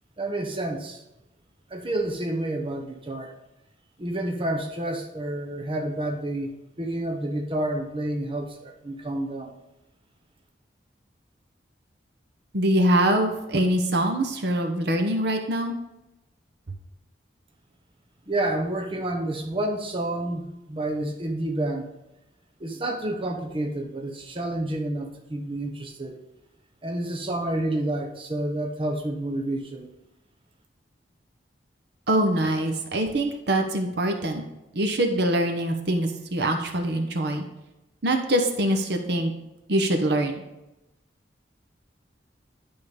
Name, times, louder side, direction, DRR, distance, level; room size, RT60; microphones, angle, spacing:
voice 1, 0.2-1.0 1.7-3.3 4.0-9.5 18.3-21.9 22.6-26.2 26.8-29.9, right 1 dB, 30° right, 2 dB, 0.9 m, -29 dB
voice 2, 12.5-15.7 32.1-34.4 34.7-37.4 38.0-39.3 39.7-40.4, right 1 dB, 65° right, 5 dB, 1.0 m, -24 dB
11.0 x 3.8 x 5.2 m, 0.93 s
head